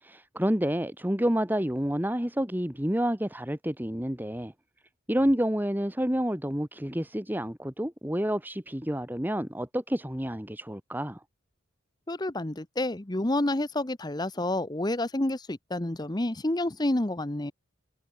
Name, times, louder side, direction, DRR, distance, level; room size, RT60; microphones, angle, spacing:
voice 1, 0.0-4.5 5.1-11.2, equal, 10° right, 1.7 m, -29 dB
voice 2, 12.1-17.5, left 1 dB, 20° left, 0.9 m, -29 dB
head